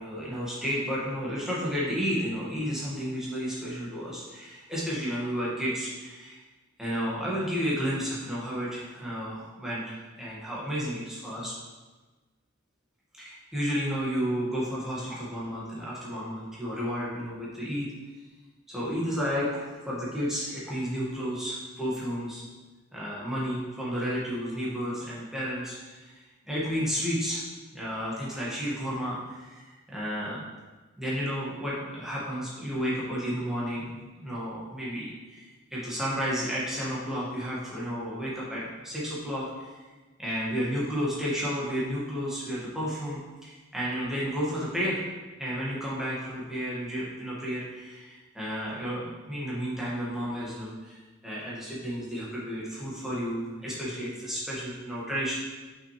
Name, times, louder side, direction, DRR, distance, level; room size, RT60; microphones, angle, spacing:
voice 1, 0.0-6.4 6.8-11.5 13.1-17.9 18.7-22.4 22.9-26.1 26.4-27.4 27.7-30.4 31.0-39.8 40.2-45.0 45.4-51.0 51.2-55.4, equal, ahead, -7 dB, 1.8 m, -32 dB
6.3 x 5.8 x 3.3 m, 1.3 s
head